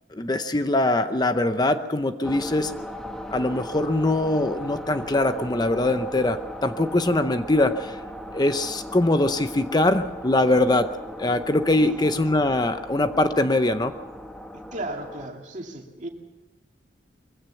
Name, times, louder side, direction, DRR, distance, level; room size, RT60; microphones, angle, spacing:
voice 1, 0.1-2.8 3.3-8.0 8.3-13.9, left 2 dB, 25° left, 10 dB, 0.7 m, -22 dB
sound 1, 2.2-15.3, equal, 5° left, 1.3 m, -38 dB
voice 2, 14.7-16.1, right 1 dB, 45° right, 2 dB, 2.5 m, -35 dB
22.5 x 16.5 x 7.0 m, 1.1 s
head